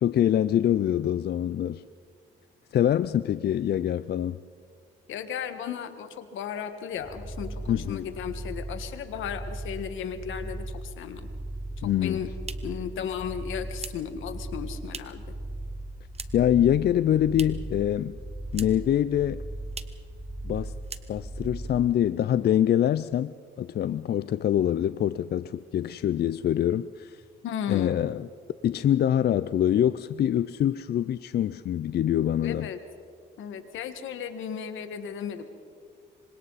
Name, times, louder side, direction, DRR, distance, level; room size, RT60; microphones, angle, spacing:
voice 1, 0.0-1.8 2.7-4.4 7.7-8.1 11.8-12.2 16.3-18.1 18.5-19.4 20.4-20.7 21.1-27.2 27.7-28.3 28.6-32.7, left 10 dB, 55° left, 15 dB, 0.5 m, -25 dB
voice 2, 5.1-11.3 12.0-12.3 12.6-15.2 27.4-28.0 32.4-32.8 33.4-35.4, left 8 dB, 80° left, 9 dB, 1.7 m, -35 dB
sound 1, 7.0-21.7, right 1 dB, 5° left, 5.0 m, -38 dB
sound 2, 12.3-15.3 15.6-16.6 16.8-17.8 18.0-19.0 19.2-19.3 19.7-20.1 20.4-20.6 20.8-21.5, right 5 dB, 30° right, 1.0 m, -43 dB
26.0 x 25.5 x 4.1 m, 2.1 s
cardioid pair, 90°, 20 cm